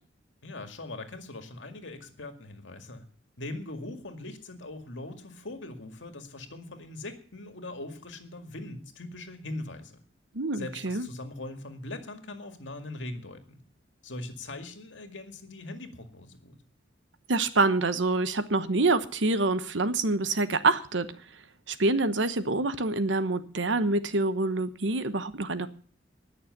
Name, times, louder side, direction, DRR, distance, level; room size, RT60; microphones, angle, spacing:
voice 1, 0.4-3.0 3.4-10.0 10.5-13.6 14.0-16.6, left 2 dB, 85° left, 6 dB, 2.1 m, -41 dB
voice 2, 10.3-11.1 17.3-21.1 21.7-25.7, right 2 dB, 85° right, 12 dB, 1.1 m, -26 dB
19.5 x 6.6 x 6.7 m, 0.43 s
head